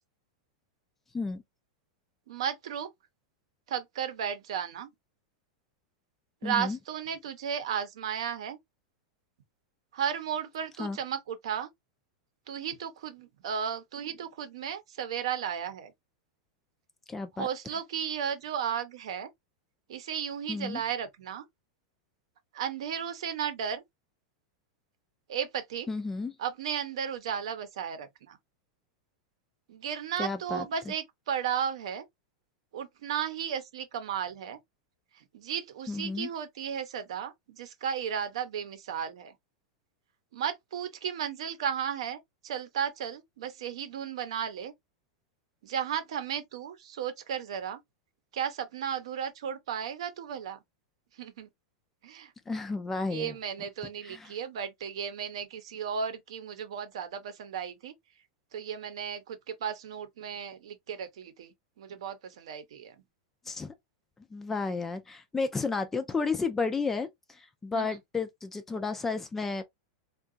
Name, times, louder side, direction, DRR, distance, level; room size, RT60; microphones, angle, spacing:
voice 1, 2.3-2.9 3.7-4.9 6.4-8.6 9.9-11.7 12.5-15.9 17.4-19.3 19.9-21.5 22.5-23.8 25.3-25.9 26.4-28.4 29.7-32.0 32.7-34.6 35.1-39.3 40.3-44.7 45.6-47.8 48.3-50.6 51.2-51.5 52.0-52.3 53.1-57.9 58.5-62.9 67.7-68.0, right 8 dB, 70° right, 0.8 m, -34 dB
voice 2, 6.4-6.8 10.8-11.0 17.1-17.5 20.5-20.8 25.9-26.3 30.2-30.7 35.9-36.3 52.5-53.3 54.1-54.3 63.5-63.7 64.3-69.6, left 4 dB, 10° left, 0.3 m, -32 dB
3.7 x 2.3 x 2.4 m
supercardioid pair, 170°, 3 cm